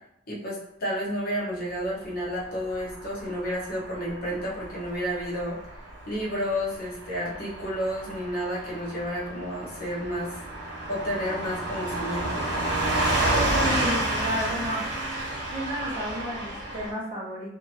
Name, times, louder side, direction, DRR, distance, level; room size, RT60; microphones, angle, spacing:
voice 1, 0.3-5.6 6.1-10.4 10.9-12.5, equal, 50° left, -5 dB, 0.9 m, -31 dB
Car passing by / Truck, 2.6-16.9, right 1 dB, 65° right, 1.3 m, -30 dB
voice 2, 13.5-14.8 15.5-17.6, equal, 30° right, -5 dB, 0.9 m, -32 dB
2.8 x 2.6 x 2.9 m, 0.76 s
head